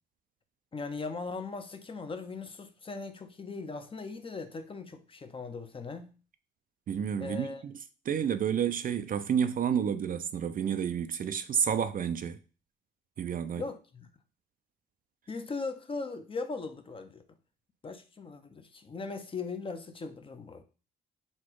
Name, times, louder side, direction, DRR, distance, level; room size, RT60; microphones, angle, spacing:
voice 1, 0.7-6.1 7.2-7.6 13.6-14.1 15.3-17.2 17.8-20.6, left 4 dB, 25° left, 0.6 m, -39 dB
voice 2, 6.9-7.8 8.1-12.4 13.2-13.6, right 8 dB, 45° right, 0.4 m, -30 dB
4.2 x 2.3 x 4.5 m
cardioid pair, 90°, 20 cm